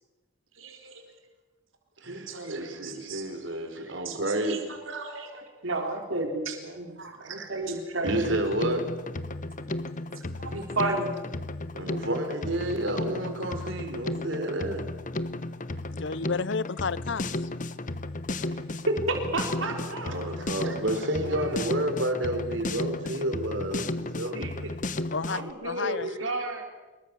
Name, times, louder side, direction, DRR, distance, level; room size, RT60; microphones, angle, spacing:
voice 1, 0.5-1.0 2.1-3.2 3.5-3.6 4.0-8.5 9.6-9.7 10.2-11.2 18.5-18.6 18.8-20.2 20.9-21.7 24.2-24.5 25.2-26.6, right 2 dB, 85° right, 3 dB, 3.9 m, -33 dB
voice 2, 2.0-4.7 7.0-7.5 8.0-9.0 11.7-14.9 19.6-24.7, right 1 dB, 65° right, 7 dB, 4.1 m, -31 dB
Drum kit, 8.1-25.5, left 2 dB, 40° left, 1.1 m, -34 dB
voice 3, 15.9-17.5 25.1-25.4 25.6-26.1, left 5 dB, 65° left, 19 dB, 0.7 m, -31 dB
26.0 x 22.0 x 7.0 m, 1.2 s
head